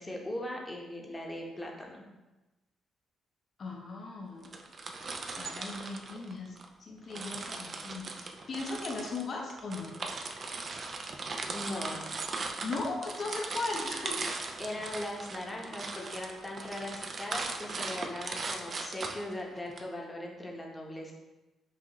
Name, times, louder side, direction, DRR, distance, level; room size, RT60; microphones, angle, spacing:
voice 1, 0.0-2.1 11.5-12.1 14.6-21.1, left 1 dB, 15° left, 0 dB, 0.8 m, -39 dB
voice 2, 3.6-4.5 5.3-9.9 12.6-14.4, left 3 dB, 50° left, 1 dB, 0.6 m, -38 dB
sound 1, 4.4-6.7 7.1-19.8, right 3 dB, 45° right, 0.5 m, -38 dB
5.5 x 2.4 x 3.0 m, 1.1 s
cardioid pair, 90°, 0 cm